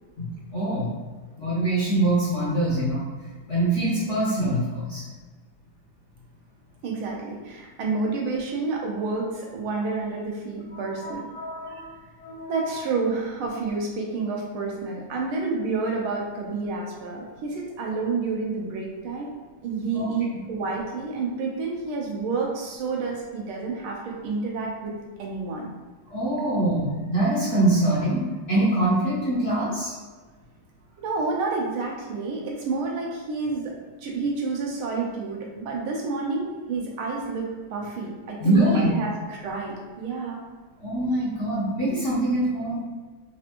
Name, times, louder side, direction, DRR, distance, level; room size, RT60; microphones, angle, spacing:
voice 1, 0.2-0.9 1.4-3.1 3.5-5.0 10.7-12.7 19.9-20.1 26.1-29.9 38.4-38.9 40.8-42.8, right 1 dB, 55° left, -8 dB, 0.8 m, -24 dB
voice 2, 6.8-11.3 12.5-19.3 19.6-25.7 31.0-33.7 34.0-40.4, right 4 dB, 90° right, -1 dB, 1.7 m, -29 dB
4.4 x 2.5 x 2.9 m, 1.4 s
omnidirectional pair, 2.2 m